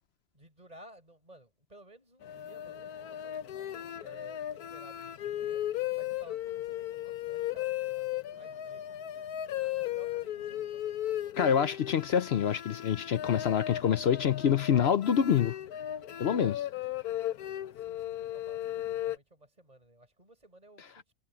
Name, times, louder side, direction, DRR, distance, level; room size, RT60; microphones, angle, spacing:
voice 1, 0.3-3.5 4.0-5.6 5.9-9.0 9.7-10.8 17.7-21.1, right 1 dB, 25° right, 7.3 m, -56 dB
sound 1, 2.2-19.2, left 12 dB, 80° left, 1.3 m, -36 dB
voice 2, 11.4-15.5 16.2-16.6, left 8 dB, 60° left, 0.7 m, -26 dB
omnidirectional pair, 1.6 m